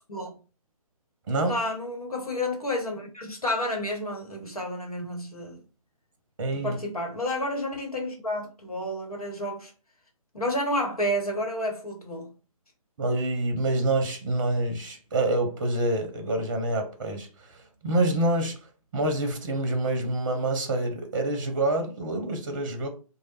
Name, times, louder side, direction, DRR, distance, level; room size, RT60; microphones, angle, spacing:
voice 1, 1.4-5.6 6.5-9.7 10.3-12.3, left 1 dB, 75° left, 1.2 m, -30 dB
voice 2, 6.4-6.8 13.0-17.3 17.8-18.6 18.9-22.9, right 2 dB, 35° right, 0.7 m, -26 dB
3.1 x 2.2 x 3.2 m
figure-of-eight pair, 140°, 19 cm